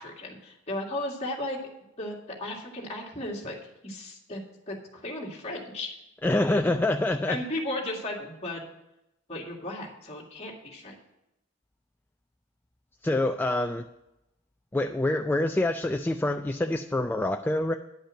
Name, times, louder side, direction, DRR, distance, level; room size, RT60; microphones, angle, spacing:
voice 1, 0.0-1.6 2.0-3.6 3.8-4.4 4.7-6.0 7.3-8.6 9.3-10.9, left 1 dB, 35° left, -2 dB, 2.1 m, -35 dB
voice 2, 6.2-7.4 13.0-13.8 14.7-17.7, left 1 dB, 10° left, 5 dB, 0.3 m, -26 dB
10.5 x 5.4 x 7.5 m, 0.88 s
head